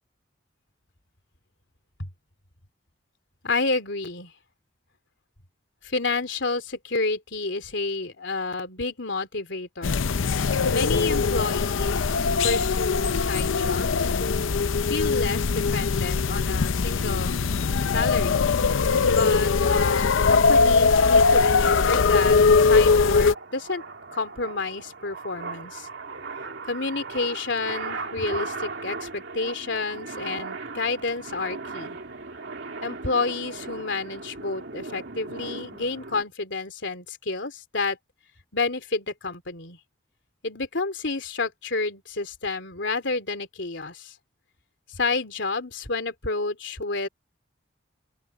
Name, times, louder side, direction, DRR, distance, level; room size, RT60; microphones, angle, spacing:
voice 1, 3.4-4.3 5.8-10.0 10.7-14.5 14.9-17.4 17.9-18.5 19.1-23.8 24.1-25.9 26.7-32.0 32.8-38.0 38.5-39.8 40.4-44.1 44.9-47.1, left 3 dB, 65° left, 3.3 m, -30 dB
sound 1, 9.8-23.3, left 4 dB, 85° left, 0.6 m, -21 dB
sound 2, 22.4-36.2, right 3 dB, 65° right, 2.8 m, -38 dB
open air
head